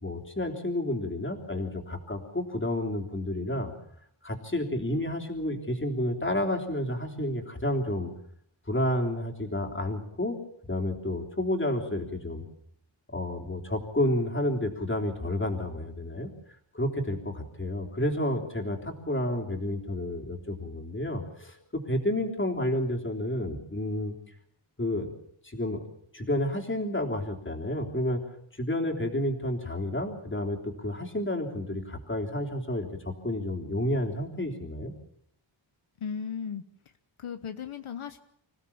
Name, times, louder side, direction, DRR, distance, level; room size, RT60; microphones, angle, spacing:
voice 1, 0.0-3.7 4.2-8.1 8.7-10.4 10.7-12.4 13.1-16.3 16.7-24.1 24.8-25.1 25.4-25.8 26.1-28.2 28.6-34.9, left 1 dB, 25° left, 2 dB, 3.4 m, -30 dB
voice 2, 36.0-36.6 37.2-38.2, left 7 dB, 80° left, 9 dB, 1.1 m, -36 dB
26.0 x 16.5 x 7.2 m, 0.69 s
wide cardioid pair, 110°, 49 cm